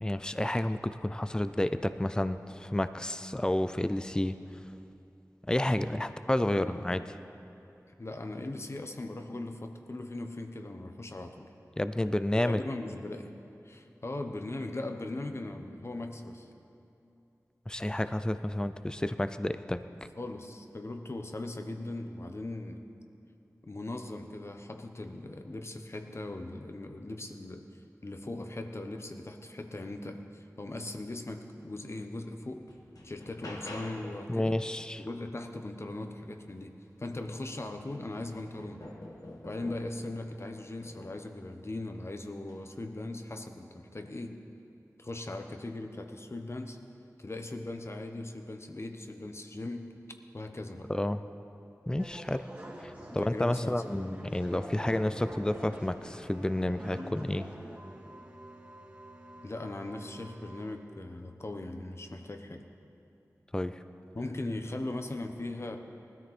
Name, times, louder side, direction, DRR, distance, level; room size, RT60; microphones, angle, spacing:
voice 1, 0.0-4.4 5.5-7.0 11.8-12.6 17.7-19.8 34.3-35.0 50.9-51.2 51.9-52.4 52.8-57.4 63.5-63.7, left 1 dB, 15° left, 11 dB, 0.5 m, -30 dB
voice 2, 6.5-6.8 8.0-11.5 12.3-13.3 13.6-16.5 20.2-22.8 23.7-27.6 28.0-32.6 33.0-34.6 35.0-38.8 39.4-44.4 45.0-46.8 47.2-49.9 50.3-50.9 53.2-54.2 59.4-62.6 64.1-65.8, left 2 dB, 50° left, 6 dB, 1.1 m, -39 dB
sound 1, 31.8-31.9 32.4-34.2 36.6-36.7 37.1-40.1 40.8-41.4 42.4-42.6, left 1 dB, 85° left, 1.7 m, -47 dB
sound 2, 52.0-60.8, equal, 25° right, 2.2 m, -46 dB
19.5 x 13.0 x 4.3 m, 2.8 s
wide cardioid pair, 50°, 6 cm